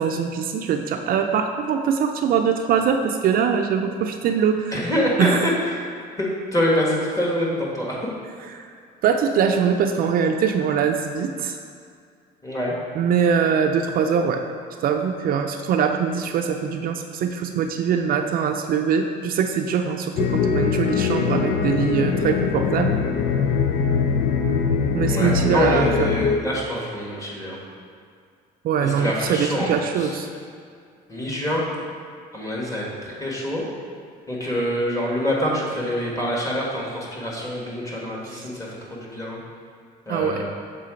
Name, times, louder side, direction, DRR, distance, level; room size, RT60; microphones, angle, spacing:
voice 1, 0.0-4.8 5.2-5.4 8.5-8.7 9.0-11.6 13.0-14.4 14.8-22.9 24.9-26.1 28.6-30.3 40.1-40.4, right 7 dB, 60° right, 5 dB, 0.4 m, -22 dB
voice 2, 4.7-5.8 6.2-8.1 12.4-12.7 25.0-27.6 28.8-30.2 31.1-31.6 32.3-33.6 34.3-39.4 40.1-40.5, equal, 20° left, -4 dB, 1.6 m, -25 dB
sound 1, 20.2-26.4, left 6 dB, 70° left, 0.5 m, -22 dB
6.6 x 3.8 x 5.1 m, 2.2 s
cardioid pair, 110°, 17 cm